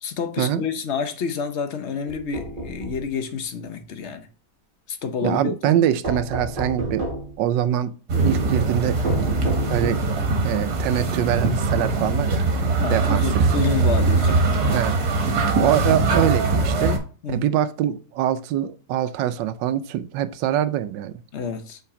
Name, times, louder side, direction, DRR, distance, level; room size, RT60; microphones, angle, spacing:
voice 1, 0.0-4.3 4.9-5.8 9.4-9.7 12.8-14.4 15.8-15.9 17.2-17.5 21.3-21.8, left 5 dB, 55° left, 0.8 m, -29 dB
sound 1, 2.1-3.1 6.0-7.4 9.0-10.2, right 1 dB, 30° right, 1.4 m, -30 dB
voice 2, 5.2-7.0 7.4-7.9 8.2-9.1 9.7-10.0 10.4-12.4 12.9-13.2 14.7-15.0 15.6-17.0 17.3-21.2, right 11 dB, 85° right, 1.3 m, -23 dB
sound 2, 8.1-17.0, right 3 dB, 60° right, 1.8 m, -21 dB
5.7 x 4.0 x 4.7 m
omnidirectional pair, 1.9 m